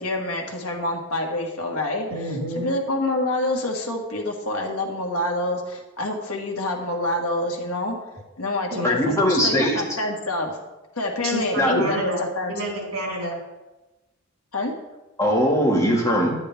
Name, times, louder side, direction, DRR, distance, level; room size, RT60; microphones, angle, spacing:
voice 1, 0.0-2.1 2.5-8.0 8.4-10.6 11.0-12.5 14.5-14.7, left 1 dB, 85° left, 1 dB, 1.7 m, -27 dB
voice 2, 2.1-2.7 8.7-8.9 11.2-13.4, right 1 dB, 75° right, -2 dB, 3.8 m, -29 dB
voice 3, 8.8-9.9 11.6-11.9 15.2-16.3, equal, 15° left, -2 dB, 1.9 m, -20 dB
11.5 x 9.7 x 3.5 m, 1.1 s
head